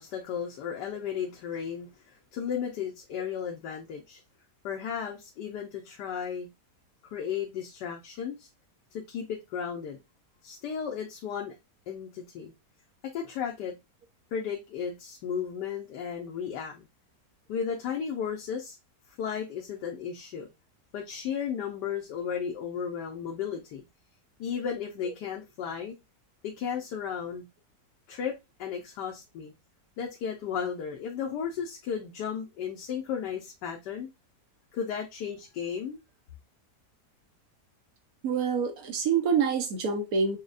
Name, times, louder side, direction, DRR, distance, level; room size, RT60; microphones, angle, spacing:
voice 1, 0.0-4.2 4.6-6.5 7.0-8.5 8.9-10.0 10.4-11.5 11.9-12.5 13.1-13.7 14.3-16.8 17.5-18.8 19.2-20.5 20.9-23.8 24.4-26.0 26.4-27.4 28.1-28.3 28.6-29.5 30.0-34.1 34.7-36.0, left 7 dB, 80° left, 1.3 m, -34 dB
voice 2, 38.2-40.4, right 6 dB, 65° right, 1.2 m, -26 dB
6.3 x 2.3 x 2.4 m
omnidirectional pair, 1.8 m